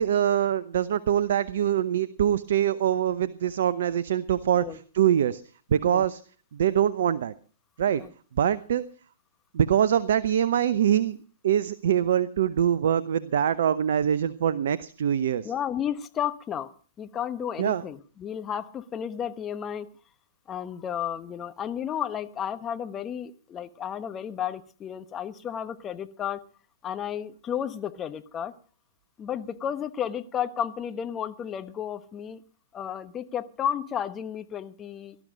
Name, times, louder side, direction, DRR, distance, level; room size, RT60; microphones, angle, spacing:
voice 1, 0.0-4.6 4.9-5.4 5.7-6.2 6.5-7.3 7.8-8.0 8.4-8.8 9.5-11.2 11.4-15.5 17.6-17.8, right 10 dB, 60° right, 15 dB, 0.7 m, -24 dB
voice 2, 15.4-16.7 17.0-19.9 20.5-26.4 26.8-28.5 29.2-32.4 32.7-35.2, left 9 dB, 20° left, 11 dB, 1.1 m, -32 dB
18.5 x 12.5 x 5.1 m, 0.41 s
figure-of-eight pair, 115°, 0 cm